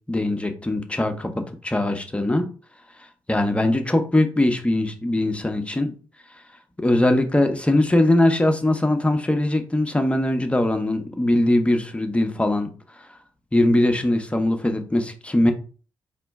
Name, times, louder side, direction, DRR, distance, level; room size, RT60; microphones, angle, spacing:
voice 1, 0.1-2.5 3.3-5.9 6.8-12.7 13.5-15.5, left 1 dB, 15° left, 6 dB, 0.7 m, -21 dB
4.1 x 3.1 x 3.5 m, 0.39 s
cardioid pair, 65°, 8 cm